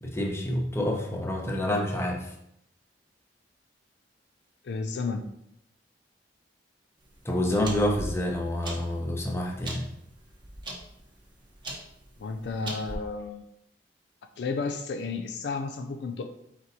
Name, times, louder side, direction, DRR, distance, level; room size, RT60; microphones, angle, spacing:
voice 1, 0.0-2.3 7.2-9.9, left 1 dB, 15° left, 0 dB, 0.7 m, -28 dB
voice 2, 4.6-5.3 12.2-13.4 14.4-16.2, left 4 dB, 65° left, 6 dB, 0.4 m, -32 dB
sound 1, 7.0-12.9, right 1 dB, 25° right, 0.8 m, -41 dB
4.6 x 4.1 x 2.7 m, 0.77 s
head